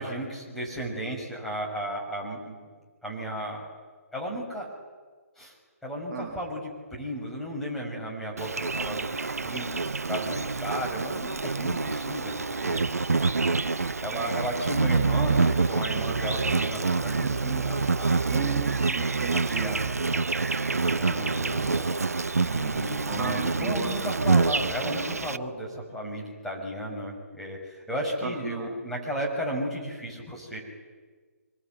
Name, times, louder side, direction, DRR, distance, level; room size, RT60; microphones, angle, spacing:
voice 1, 0.0-2.7 3.0-3.7 4.1-4.7 5.4-5.5 5.8-9.2 9.4-12.8 14.0-18.2 19.3-19.9 20.1-20.2 20.9-30.6, equal, 5° left, -4 dB, 6.1 m, -34 dB
Insect, 8.4-25.4, right 4 dB, 65° right, 0.9 m, -27 dB
voice 2, 18.3-19.7 23.0-23.9 28.5-28.7, right 7 dB, 20° right, 1 dB, 2.0 m, -34 dB
25.0 x 22.0 x 9.3 m, 1.4 s
figure-of-eight pair, 135°, 9 cm